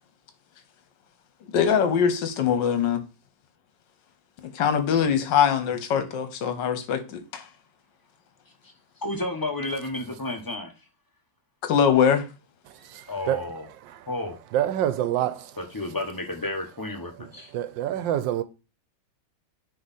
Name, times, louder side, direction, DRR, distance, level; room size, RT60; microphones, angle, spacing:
voice 1, 1.5-3.0 4.5-7.4 11.6-12.3, left 7 dB, 70° left, 1.6 m, -22 dB
voice 2, 9.0-10.7 13.1-13.7 14.1-14.4 15.6-17.5, left 2 dB, 15° left, 0.8 m, -31 dB
voice 3, 12.6-14.1 14.5-15.6 17.2-18.4, right 12 dB, 80° right, 1.4 m, -28 dB
9.4 x 3.4 x 4.1 m
omnidirectional pair, 2.1 m